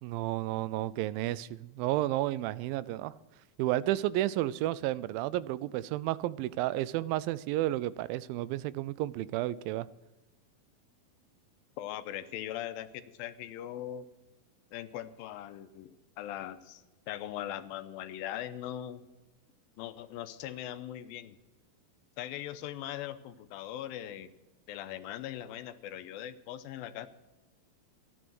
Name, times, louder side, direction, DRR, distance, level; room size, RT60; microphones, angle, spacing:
voice 1, 0.0-3.1 3.6-9.9, right 15 dB, 85° right, 18 dB, 2.3 m, -32 dB
voice 2, 11.8-14.1 14.7-19.0 19.8-21.4 22.2-24.3 24.7-27.1, left 12 dB, 85° left, 11 dB, 2.4 m, -40 dB
13.5 x 10.0 x 6.2 m, 1.1 s
omnidirectional pair, 4.2 m